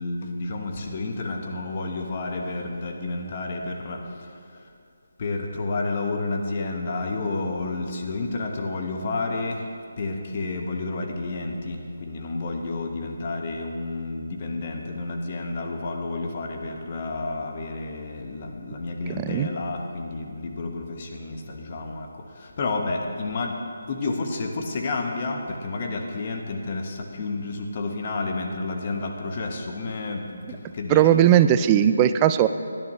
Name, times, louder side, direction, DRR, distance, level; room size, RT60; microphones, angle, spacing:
voice 1, 0.0-4.7 5.2-23.6 23.9-31.1, left 3 dB, 40° left, 2 dB, 1.3 m, -30 dB
voice 2, 19.1-19.5 30.9-32.5, right 11 dB, 20° right, 11 dB, 0.4 m, -18 dB
18.0 x 10.5 x 3.2 m, 2.3 s
figure-of-eight pair, 160°, 0 cm